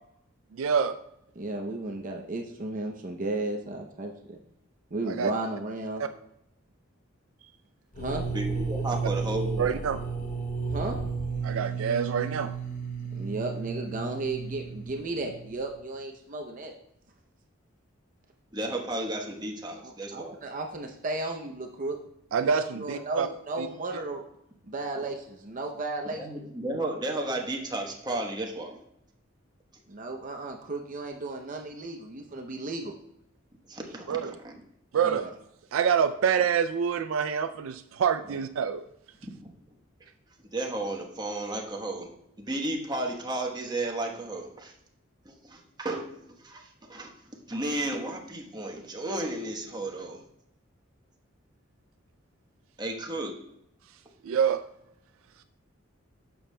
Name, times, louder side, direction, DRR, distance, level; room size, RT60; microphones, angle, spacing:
voice 1, 0.5-1.0 5.1-5.3 6.0-6.1 9.6-10.0 11.4-12.6 22.3-23.3 23.6-23.7 34.1-34.4 34.9-35.3 35.7-38.8 54.2-54.7, right 7 dB, 75° right, 10 dB, 0.4 m, -26 dB
voice 2, 1.4-4.4 4.9-6.0 8.0-8.2 10.7-11.0 13.1-16.7 19.8-22.0 22.4-24.2 24.6-26.2 29.9-32.9 35.0-35.2, right 2 dB, 40° right, 3 dB, 0.6 m, -34 dB
sound 1, 7.9-15.7, right 5 dB, 40° left, 0.9 m, -33 dB
voice 3, 8.3-9.7 18.5-20.3 26.2-28.8 33.7-34.6 39.2-39.3 40.5-42.1 42.4-44.7 45.2-46.1 46.4-47.1 47.5-50.2 52.8-53.4, right 1 dB, 20° right, 0 dB, 1.1 m, -33 dB
11.0 x 7.0 x 2.2 m, 0.78 s
head